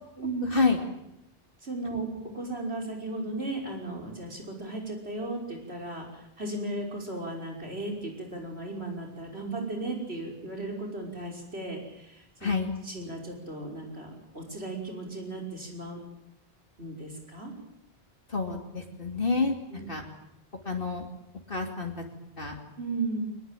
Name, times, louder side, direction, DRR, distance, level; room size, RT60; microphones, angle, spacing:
voice 1, 0.4-0.8 12.4-12.7 18.3-19.6 19.9-20.0 20.6-21.1 21.5-22.1 22.4-22.5, left 4 dB, 60° left, 2 dB, 2.9 m, -28 dB
voice 2, 1.6-6.1 6.4-12.5 12.9-16.0 16.8-17.5 19.7-19.8 22.8-23.2, right 2 dB, 80° right, 1 dB, 5.9 m, -35 dB
24.0 x 20.0 x 9.1 m, 0.82 s
omnidirectional pair, 1.1 m